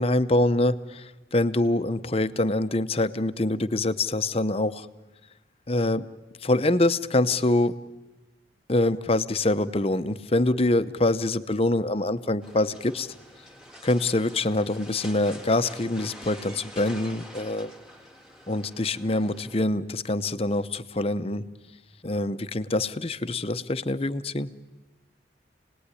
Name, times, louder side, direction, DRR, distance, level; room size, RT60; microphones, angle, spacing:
voice 1, 0.0-4.9 5.7-6.1 6.4-7.8 8.7-13.1 13.8-17.7 18.5-21.4 22.0-24.5, left 2 dB, 30° left, 12 dB, 0.8 m, -25 dB
sound 1, 12.4-19.6, equal, 5° right, 1.9 m, -46 dB
28.5 x 19.0 x 9.9 m, 1.2 s
head